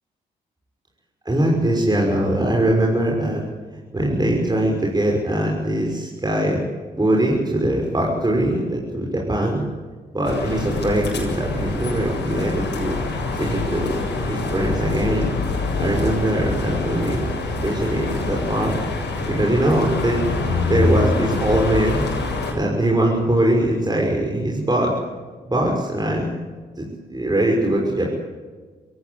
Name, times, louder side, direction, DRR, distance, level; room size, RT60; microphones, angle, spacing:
voice 1, 1.2-3.4 3.9-6.6 6.9-9.6 10.1-13.0 13.3-15.3 15.8-17.3 17.6-18.8 19.3-22.1 22.5-25.0 25.5-26.3 26.8-28.1, right 1 dB, 20° right, -1 dB, 6.2 m, -21 dB
sound 1, 10.2-22.5, left 3 dB, 70° left, 7.4 m, -25 dB
25.0 x 17.5 x 8.1 m, 1.4 s
supercardioid pair, 50°, 19 cm